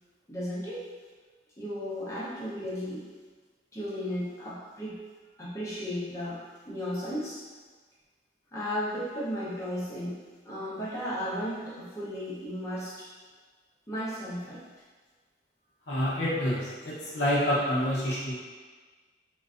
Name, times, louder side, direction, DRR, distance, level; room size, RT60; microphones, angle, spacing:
voice 1, 0.3-0.8 1.6-3.0 3.7-5.0 5.4-7.4 8.5-10.2 10.5-13.1 13.9-14.6, equal, 15° left, -8 dB, 0.5 m, -34 dB
voice 2, 15.9-18.3, equal, 65° left, -7 dB, 0.6 m, -27 dB
2.4 x 2.2 x 2.4 m, 1.4 s
head